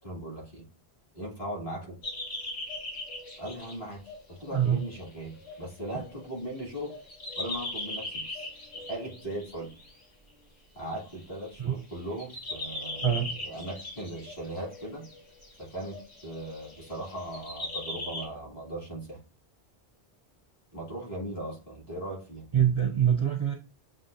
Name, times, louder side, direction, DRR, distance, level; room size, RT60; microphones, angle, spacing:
voice 1, 0.0-0.7 1.1-2.0 3.4-7.0 7.4-8.5 8.9-9.7 10.7-15.1 15.6-16.0 16.2-19.2 20.7-22.5, right 1 dB, 55° left, -4 dB, 2.4 m, -38 dB
sound 1, 2.0-9.9 11.0-11.6 11.9-18.3, left 1 dB, 85° left, 2.0 m, -40 dB
voice 2, 22.5-23.5, right 9 dB, 45° right, 4 dB, 0.4 m, -24 dB
7.4 x 2.5 x 2.6 m, 0.36 s
omnidirectional pair, 1.1 m